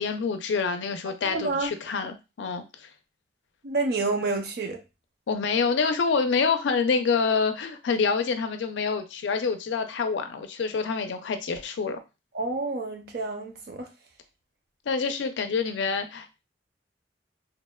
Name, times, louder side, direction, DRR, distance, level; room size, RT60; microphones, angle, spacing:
voice 1, 0.0-2.9 5.3-12.0 14.9-16.4, left 5 dB, 90° left, 0.4 m, -27 dB
voice 2, 1.1-1.7 3.6-4.8 12.3-13.9, right 3 dB, 60° right, 0.5 m, -29 dB
2.9 x 2.0 x 2.2 m
head